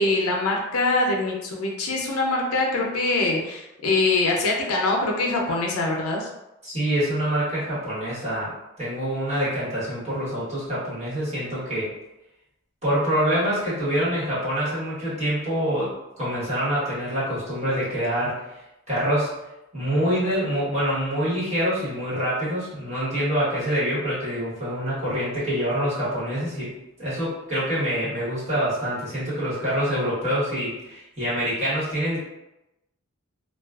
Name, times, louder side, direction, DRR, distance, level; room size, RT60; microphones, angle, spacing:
voice 1, 0.0-6.3, left 2 dB, 80° left, -1 dB, 0.5 m, -23 dB
voice 2, 6.6-8.5 8.8-11.9 12.8-18.4 18.9-19.3 19.7-26.7 27.0-32.2, equal, 30° right, -10 dB, 1.2 m, -26 dB
2.3 x 2.3 x 2.3 m, 0.93 s
head